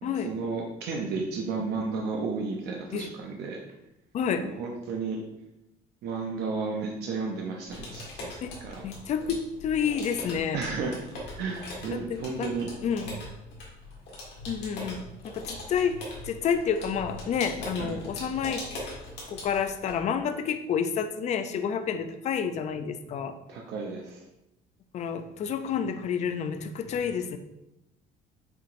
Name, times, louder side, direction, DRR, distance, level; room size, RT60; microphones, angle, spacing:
voice 1, 0.0-3.6 4.4-5.2 6.0-8.3 8.6-8.8 10.5-11.0 11.4-12.7 17.8-18.0 23.5-24.2, right 4 dB, 75° right, 0 dB, 0.6 m, -33 dB
sound 1, 7.7-20.0, left 1 dB, 85° left, 1.5 m, -41 dB
voice 2, 8.8-10.6 12.1-12.5 12.8-13.2 14.5-16.0 16.2-19.0 19.3-23.3 24.9-27.4, left 7 dB, 45° left, 8 dB, 0.4 m, -29 dB
5.8 x 2.9 x 2.5 m, 0.90 s
cardioid pair, 110°, 17 cm